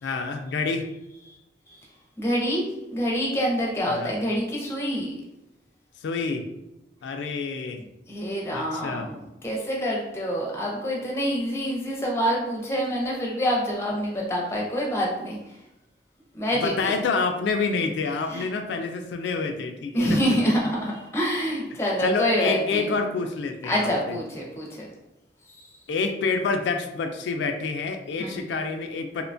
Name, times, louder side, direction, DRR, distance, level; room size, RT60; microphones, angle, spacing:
voice 1, 0.0-0.9 3.9-4.1 6.0-6.4 7.0-7.8 8.5-9.1 16.5-20.2 21.7-24.2 25.9-29.2, left 4 dB, 85° left, 5 dB, 0.3 m, -28 dB
voice 2, 2.2-5.1 8.1-15.4 16.3-17.0 18.3-18.5 19.9-23.0 23.7-24.9 25.5-25.6 28.2-28.4, equal, 15° left, -3 dB, 0.5 m, -26 dB
2.7 x 2.1 x 2.5 m, 0.93 s
head